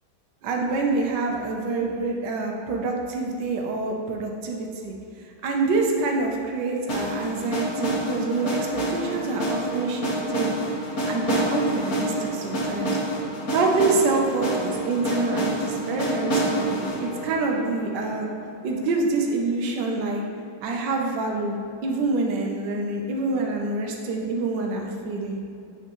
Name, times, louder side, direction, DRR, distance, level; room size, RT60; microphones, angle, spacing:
voice 1, 0.4-4.9 5.4-10.6 11.1-13.0 13.5-18.3 18.6-20.2 20.6-21.6 21.8-25.4, right 3 dB, 65° right, 1 dB, 1.4 m, -26 dB
sound 1, 6.9-18.8, right 1 dB, 45° left, 1.9 m, -28 dB
8.3 x 5.8 x 3.0 m, 2.6 s
omnidirectional pair, 2.2 m